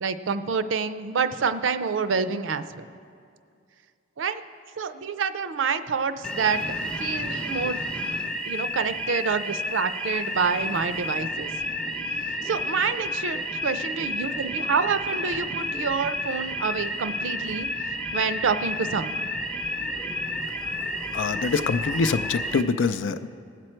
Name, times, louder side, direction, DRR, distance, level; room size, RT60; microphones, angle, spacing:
voice 1, 0.0-2.9 4.2-4.4 4.8-6.6 7.0-7.8 8.5-11.5 12.2-17.7 18.1-19.3, right 5 dB, 80° right, 11 dB, 0.5 m, -27 dB
sound 1, 6.2-22.6, left 1 dB, 5° left, 0.6 m, -31 dB
voice 2, 21.1-23.3, left 4 dB, 75° left, 11 dB, 0.4 m, -25 dB
19.5 x 7.6 x 4.4 m, 2.3 s
head